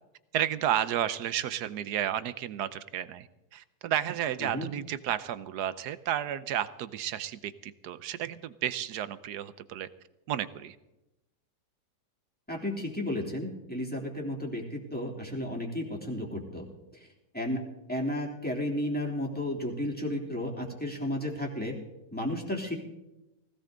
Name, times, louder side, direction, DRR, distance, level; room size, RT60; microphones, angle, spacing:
voice 1, 0.3-9.9 10.3-10.8, right 11 dB, 70° right, 14 dB, 1.3 m, -32 dB
voice 2, 12.5-16.6 17.3-17.6 17.9-21.8 22.1-22.8, left 1 dB, 5° left, -2 dB, 3.1 m, -33 dB
20.0 x 17.0 x 3.9 m, 0.94 s
omnidirectional pair, 1.8 m